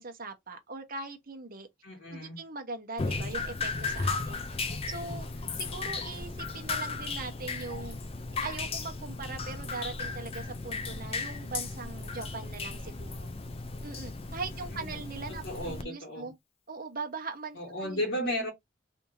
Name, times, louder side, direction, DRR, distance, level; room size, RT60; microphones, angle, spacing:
voice 1, 0.0-1.7 2.1-8.0 8.4-13.3 13.8-16.3 16.7-18.0, right 4 dB, 50° right, 0.9 m, -41 dB
voice 2, 1.8-2.4 14.5-15.0 15.3-16.3 17.5-18.5, equal, 70° left, 1.8 m, -35 dB
Drip, 3.0-15.8, left 4 dB, 30° left, 0.5 m, -35 dB
3.4 x 2.8 x 2.8 m
head